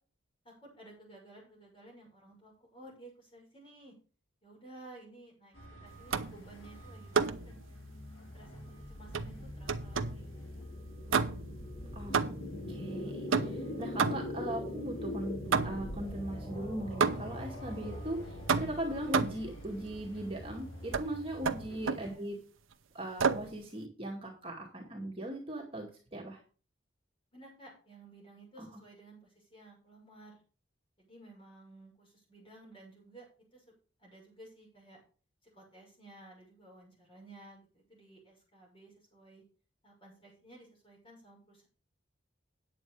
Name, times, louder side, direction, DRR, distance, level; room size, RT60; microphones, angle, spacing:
voice 1, 0.4-4.0 4.4-5.6 5.8-7.6 8.3-8.6 8.9-10.3 22.0-22.2 27.3-30.4 31.0-33.3 33.5-33.6 34.0-35.0 35.4-39.4 39.8-41.7, right 2 dB, 25° left, -2 dB, 6.3 m, -55 dB
sound 1, 5.5-22.1, left 1 dB, 90° left, 4.3 m, -49 dB
sound 2, 6.1-6.5 7.1-7.5 9.1-10.3 11.1-11.6 12.1-12.6 13.3-14.5 15.5-16.0 17.0-17.5 18.5-19.5 20.9-21.1 21.4-22.1 23.2-23.5, right 5 dB, 85° right, 0.8 m, -31 dB
sound 3, 8.4-21.5, left 1 dB, 40° left, 4.3 m, -43 dB
voice 2, 12.7-15.4 15.6-22.4 22.9-26.4 28.6-28.8, right 1 dB, 25° right, -2 dB, 2.2 m, -39 dB
9.4 x 8.1 x 4.9 m, 0.38 s
head